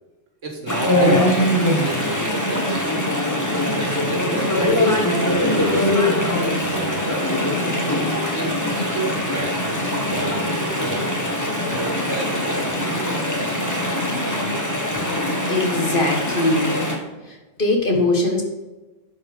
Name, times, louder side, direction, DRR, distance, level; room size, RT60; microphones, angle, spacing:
voice 1, 0.4-3.1 3.8-7.5 8.2-9.6 10.0-11.1 11.7-13.1, right 3 dB, 80° right, 2 dB, 2.0 m, -32 dB
Chatter / Stream, 0.7-16.9, left 1 dB, 15° left, 1.5 m, -22 dB
voice 2, 15.5-16.7 17.3-18.4, left 2 dB, 45° left, 1 dB, 1.7 m, -21 dB
11.0 x 5.0 x 5.0 m, 1.1 s
omnidirectional pair, 1.3 m